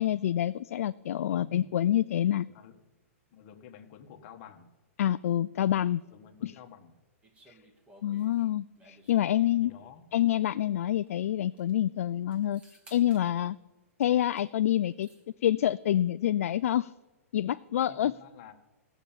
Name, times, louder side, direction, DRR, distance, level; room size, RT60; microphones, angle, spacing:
voice 1, 0.0-2.5 5.0-6.0 6.4-6.5 7.5-7.6 8.0-9.7 10.1-12.6 12.9-13.6 14.0-15.1 15.4-16.9 17.3-18.1, left 12 dB, 70° left, 13 dB, 0.4 m, -27 dB
voice 2, 1.3-1.7 2.5-2.8 3.3-4.7 6.1-6.9 9.6-10.0 17.9-18.5, left 8 dB, 45° left, 5 dB, 1.5 m, -50 dB
sound 1, 7.2-10.0 11.1-11.2 11.4-11.8 12.3-13.3 14.0-14.5 14.7-15.3, right 1 dB, 15° right, 2.0 m, -59 dB
15.0 x 7.0 x 8.9 m, 1.2 s
hypercardioid pair, 135°, 8 cm